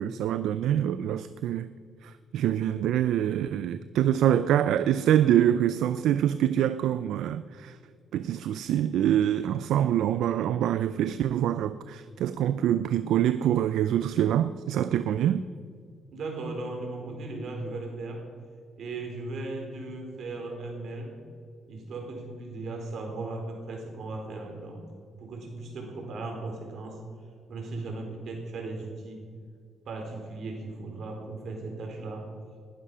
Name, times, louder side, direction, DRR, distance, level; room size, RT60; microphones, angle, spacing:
voice 1, 0.0-1.7 2.0-7.8 8.1-15.4, right 10 dB, 80° right, 0.5 m, -25 dB
voice 2, 16.1-18.3 18.8-21.1 21.7-24.8 25.2-27.0 27.5-29.2 29.8-32.3, right 2 dB, 65° right, 4.5 m, -37 dB
20.0 x 11.0 x 5.6 m
cardioid pair, 90°, 0 cm